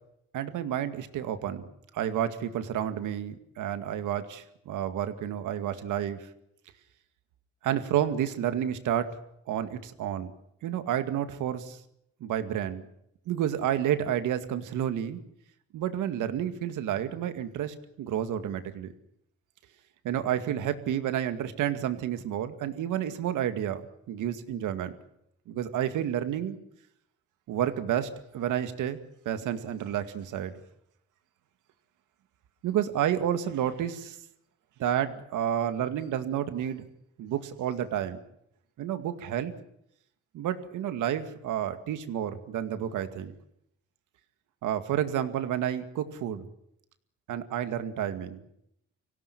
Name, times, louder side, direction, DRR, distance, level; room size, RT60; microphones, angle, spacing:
voice 1, 0.3-6.3 7.6-9.2 9.5-10.3 10.6-11.8 12.2-12.8 13.3-15.2 15.7-18.9 20.0-25.0 25.5-26.6 27.5-29.0 29.3-30.5 32.6-34.2 34.8-36.9 37.2-38.2 38.8-39.5 40.3-43.3 44.6-46.5 47.3-48.4, right 10 dB, 85° right, 9 dB, 2.1 m, -30 dB
25.0 x 17.0 x 9.9 m, 0.77 s
cardioid pair, 90°, 30 cm